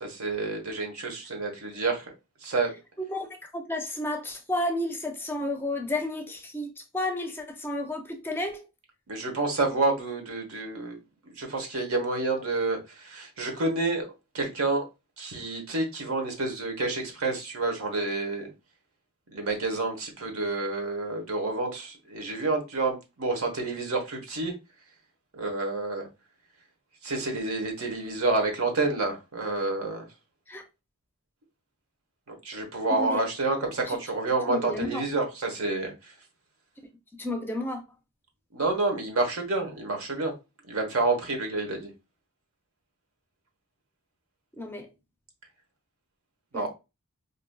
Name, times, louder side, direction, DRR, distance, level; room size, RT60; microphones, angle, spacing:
voice 1, 0.0-2.0 2.4-2.7 9.1-11.0 11.2-14.8 15.2-18.5 19.3-24.5 25.3-26.1 27.0-30.1 32.3-35.9 38.5-40.3 40.7-41.9 46.5-46.7, right 3 dB, 85° right, 1.1 m, -29 dB
voice 2, 3.0-8.6 30.5-30.6 32.9-33.2 33.9-34.0 34.5-35.0 37.2-37.8 44.6-44.9 46.5-46.7, left 1 dB, 10° left, 0.5 m, -32 dB
4.9 x 2.7 x 2.3 m
head